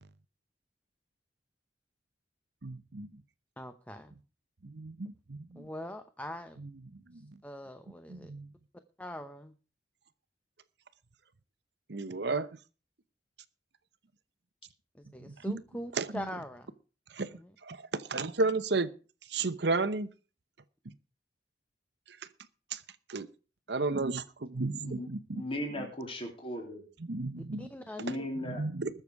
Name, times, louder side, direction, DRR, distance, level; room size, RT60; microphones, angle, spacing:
voice 1, 2.6-3.2 4.6-5.7 6.6-7.4 8.1-8.5 11.9-12.5 15.2-15.6 15.9-16.3 17.1-18.9 19.2-20.1 22.1-22.3 22.7-22.8 23.1-23.3 23.7-25.4 25.8-25.9 27.0-27.7 28.1-28.2 28.4-28.9, right 3 dB, 65° right, 14 dB, 0.9 m, -34 dB
voice 2, 3.6-4.1 5.5-6.6 7.4-8.3 9.0-9.5 14.9-16.7 27.6-28.3, left 1 dB, 10° left, 9 dB, 0.8 m, -42 dB
voice 3, 25.3-26.8 28.0-28.6, left 1 dB, 30° left, 2 dB, 3.4 m, -37 dB
20.5 x 7.0 x 4.7 m, 0.36 s
head